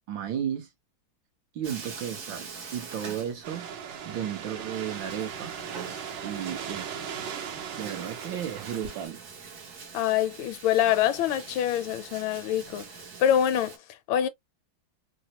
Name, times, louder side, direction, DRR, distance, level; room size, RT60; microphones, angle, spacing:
voice 1, 0.1-0.7 1.5-3.7 4.0-5.5 6.2-7.1 7.8-9.2, right 9 dB, 70° right, 1.6 m, -34 dB
Bathtub (filling or washing), 1.6-3.9 4.2-4.3 4.7-13.8, right 5 dB, 50° right, 1.2 m, -44 dB
sound 1, 3.4-9.1, right 7 dB, 85° right, 1.8 m, -38 dB
voice 2, 9.9-12.8 13.2-14.3, left 10 dB, 80° left, 1.3 m, -25 dB
3.9 x 2.0 x 2.8 m
omnidirectional pair, 2.2 m